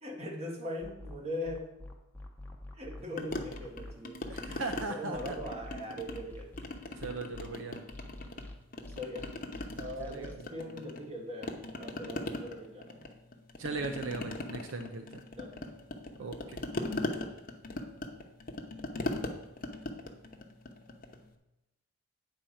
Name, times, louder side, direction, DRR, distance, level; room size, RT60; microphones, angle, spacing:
voice 1, 0.0-1.7 2.8-4.2 4.9-6.5 9.0-9.3 9.8-13.0 13.7-13.9 15.4-15.7 16.2-16.5, equal, 30° right, -1 dB, 1.6 m, -41 dB
sound 1, 0.8-7.5 7.9-10.3, left 1 dB, 10° left, 0.8 m, -46 dB
sound 2, 3.2-4.9 5.2-6.3 6.6-8.4 8.7-11.1 11.4-21.2, left 2 dB, 45° left, 0.8 m, -39 dB
voice 2, 4.3-5.4 7.0-7.8 10.0-10.4 13.6-15.2 16.2-16.6 17.0-17.1, right 3 dB, 75° right, 6 dB, 0.6 m, -38 dB
9.0 x 4.3 x 6.3 m, 0.95 s
head